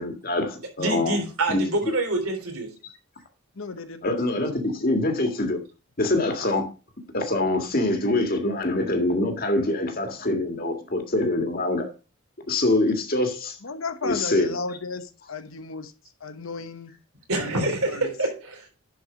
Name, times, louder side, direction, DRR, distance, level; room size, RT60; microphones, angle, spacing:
voice 1, 0.0-1.2 1.5-1.9 2.8-2.9 4.0-5.6 6.0-6.7 7.1-11.9 12.5-13.6 14.0-14.5, left 2 dB, 45° left, 1.8 m, -24 dB
voice 2, 0.8-2.7 17.3-18.7, right 2 dB, 85° right, 3.3 m, -26 dB
voice 3, 3.6-4.6 13.6-15.9 16.2-16.9 17.3-17.6 17.9-18.1, left 3 dB, 70° left, 1.0 m, -34 dB
10.5 x 4.7 x 4.9 m
head